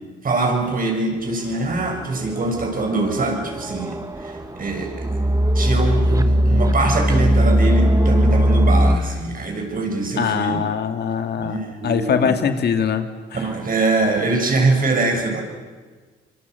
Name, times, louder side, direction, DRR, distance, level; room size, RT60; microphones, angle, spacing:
voice 1, 0.2-5.3 5.5-10.6 11.4-12.4 13.3-15.4, right 3 dB, 45° right, 3 dB, 7.0 m, -23 dB
sound 1, 1.7-9.0, equal, 15° right, 1.8 m, -19 dB
voice 2, 10.2-13.4, left 7 dB, 60° left, 7 dB, 2.2 m, -22 dB
26.0 x 24.0 x 8.1 m, 1.4 s
supercardioid pair, 65°, 19 cm